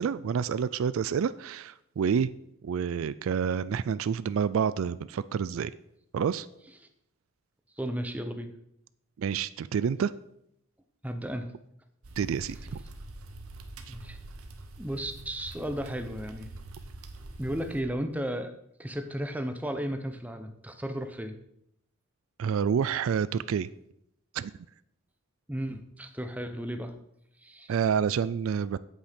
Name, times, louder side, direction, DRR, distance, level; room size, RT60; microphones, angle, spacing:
voice 1, 0.0-2.3 2.6-5.7 6.1-6.5 9.2-10.1 12.2-12.8 13.9-14.0 22.4-23.7 24.3-24.5 27.7-28.8, right 7 dB, 70° right, 17 dB, 0.3 m, -28 dB
voice 2, 7.8-8.5 11.0-11.5 13.9-14.2 14.8-16.5 17.4-18.5 18.8-21.4 25.5-26.9 27.4-27.7, equal, 5° right, 7 dB, 0.8 m, -34 dB
sound 1, 12.0-17.8, right 2 dB, 85° right, 1.1 m, -45 dB
8.2 x 8.2 x 5.1 m, 0.77 s
head